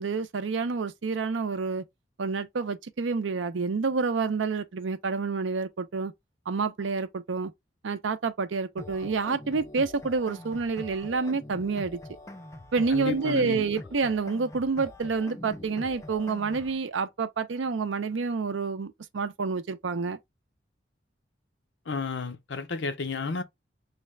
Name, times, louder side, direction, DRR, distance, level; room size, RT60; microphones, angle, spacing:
voice 1, 0.0-1.8 2.2-6.1 6.5-7.5 7.8-12.0 12.7-20.2, right 4 dB, 85° right, 0.5 m, -28 dB
sound 1, 8.8-16.8, left 1 dB, 15° left, 0.4 m, -44 dB
voice 2, 12.9-13.6 21.9-23.4, left 4 dB, 75° left, 0.6 m, -32 dB
3.2 x 2.4 x 3.2 m
head